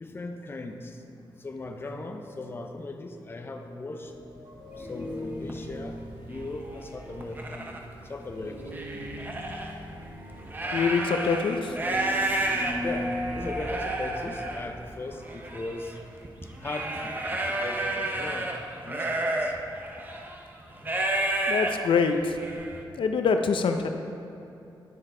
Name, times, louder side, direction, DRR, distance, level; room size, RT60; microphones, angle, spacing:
voice 1, 0.0-1.0 1.4-4.1 4.8-6.0 6.3-7.8 8.1-8.8 12.8-16.0 16.6-18.5 18.8-19.6, left 2 dB, 25° left, 5 dB, 0.5 m, -38 dB
sound 1, 4.0-16.8, equal, 55° right, 1.9 m, -40 dB
sound 2, 4.9-5.0 5.5-5.7 6.4-6.5 6.9-7.8 8.3-9.7 10.3-22.8, right 1 dB, 20° right, 0.7 m, -31 dB
voice 2, 10.7-11.8 21.5-22.3 23.0-23.9, left 5 dB, 85° left, 6 dB, 0.5 m, -24 dB
10.0 x 6.4 x 3.7 m, 2.8 s
wide cardioid pair, 145°, 9 cm